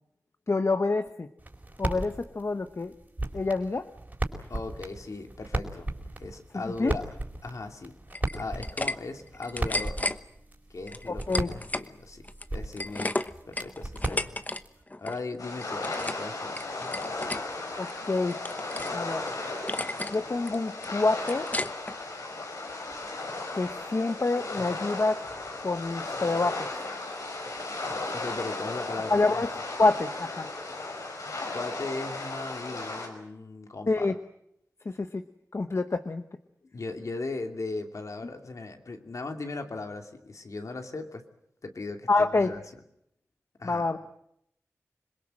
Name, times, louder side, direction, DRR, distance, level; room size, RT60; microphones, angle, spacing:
voice 1, 0.5-1.3 1.8-2.9 3.3-3.9 6.8-7.0 11.1-11.5 17.8-18.4 18.9-19.3 20.1-21.5 23.5-25.2 25.6-26.7 29.1-29.5 29.8-30.5 33.9-34.2 34.8-35.2 35.5-36.2 42.1-42.5 43.6-44.0, left 3 dB, 55° left, 8 dB, 1.1 m, -27 dB
sound 1, 1.4-14.8, right 2 dB, 30° right, 4.6 m, -37 dB
voice 2, 4.5-5.9 6.2-7.0 7.4-7.9 8.3-10.0 10.7-12.2 12.5-13.2 13.5-14.3 15.0-16.6 28.1-29.5 31.5-34.1 36.7-41.2 41.6-42.6 43.6-43.9, left 3 dB, 70° left, 5 dB, 2.6 m, -37 dB
sound 2, 8.1-8.9 9.3-10.2 10.9-11.9 12.2-14.6 14.9-15.2 15.6-16.3 16.5-17.4 17.9-19.0 19.3-19.4 19.7-20.2 20.5-21.9, left 2 dB, 30° left, 1.0 m, -33 dB
sound 3, 15.4-33.1, left 2 dB, 85° left, 5.5 m, -36 dB
26.5 x 22.0 x 7.7 m, 0.75 s
wide cardioid pair, 65°, 6 cm